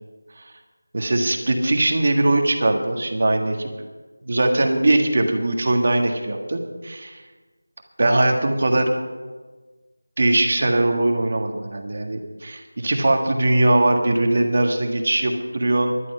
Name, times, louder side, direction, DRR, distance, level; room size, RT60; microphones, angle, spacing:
voice 1, 0.9-3.7 4.2-7.2 8.0-9.0 10.2-15.9, right 2 dB, 40° right, 4 dB, 1.7 m, -20 dB
18.5 x 12.0 x 5.5 m, 1.3 s
figure-of-eight pair, 175°, 0 cm